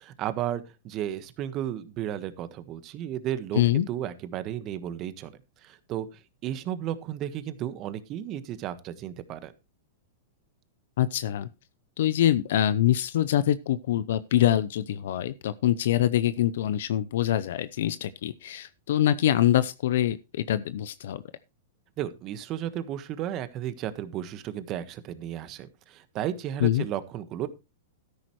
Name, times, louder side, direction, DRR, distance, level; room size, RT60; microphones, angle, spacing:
voice 1, 0.0-5.3 5.6-9.5 22.0-27.5, right 11 dB, 35° right, 1.4 m, -34 dB
voice 2, 3.5-3.9 11.0-11.5 12.0-21.2 26.6-26.8, left 12 dB, 70° left, 0.6 m, -24 dB
13.0 x 10.5 x 3.1 m
hypercardioid pair, 130°, 0 cm